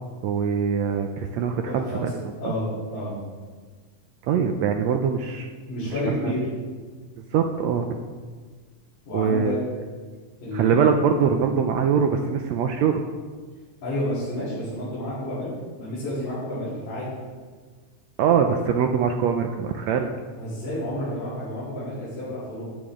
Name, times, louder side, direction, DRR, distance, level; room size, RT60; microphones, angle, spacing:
voice 1, 0.2-2.1 2.4-2.5 4.2-5.5 5.8-6.3 7.3-7.9 9.1-9.5 10.5-13.0 18.2-20.1, right 7 dB, 85° right, 4 dB, 1.6 m, -23 dB
voice 2, 1.6-2.1 2.4-3.1 5.7-6.5 9.1-9.6 10.4-10.8 13.8-15.5 15.8-17.1 20.3-22.7, left 1 dB, 85° left, -12 dB, 5.3 m, -30 dB
13.5 x 9.2 x 3.7 m, 1.5 s
omnidirectional pair, 3.7 m